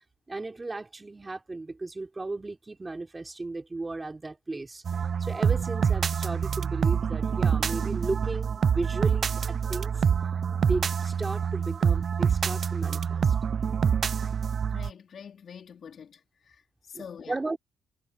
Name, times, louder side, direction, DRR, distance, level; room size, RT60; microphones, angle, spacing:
voice 1, 0.3-4.8 5.2-10.0 10.6-13.3 16.9-17.6, right 3 dB, 20° right, 4.1 m, -35 dB
sound 1, 4.9-14.9, right 7 dB, 50° right, 0.5 m, -26 dB
voice 2, 14.6-17.4, left 7 dB, 55° left, 4.1 m, -45 dB
cardioid pair, 90°, 0 cm